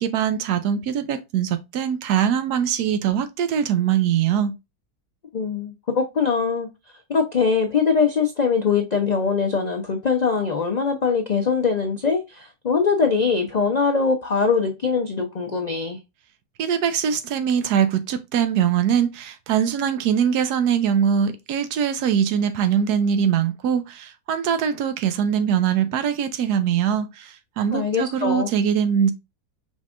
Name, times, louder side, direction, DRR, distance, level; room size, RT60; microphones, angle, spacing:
voice 1, 0.0-4.5 16.6-29.1, right 8 dB, 90° right, 1.2 m, -22 dB
voice 2, 5.3-6.7 7.1-16.0 27.7-28.5, left 5 dB, 85° left, 0.3 m, -22 dB
5.1 x 3.5 x 2.4 m
omnidirectional pair, 1.7 m